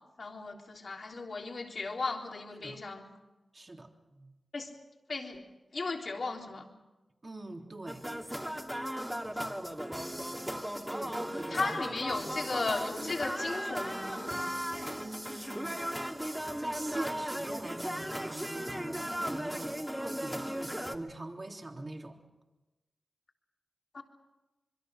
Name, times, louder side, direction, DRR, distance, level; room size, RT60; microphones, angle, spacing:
voice 1, 0.0-3.1 4.5-4.7 5.1-5.4 5.7-6.7 11.5-14.5 23.9-24.0, left 3 dB, 65° left, 2 dB, 3.5 m, -36 dB
voice 2, 3.5-4.3 7.2-8.0 10.9-11.7 12.1-12.4 15.0-15.8 16.2-16.3 16.6-22.2, right 2 dB, 40° right, 3 dB, 3.3 m, -43 dB
sound 1, 7.9-21.0, equal, 10° right, 2.5 m, -36 dB
25.5 x 22.5 x 6.5 m, 1.1 s
cardioid pair, 45°, 0 cm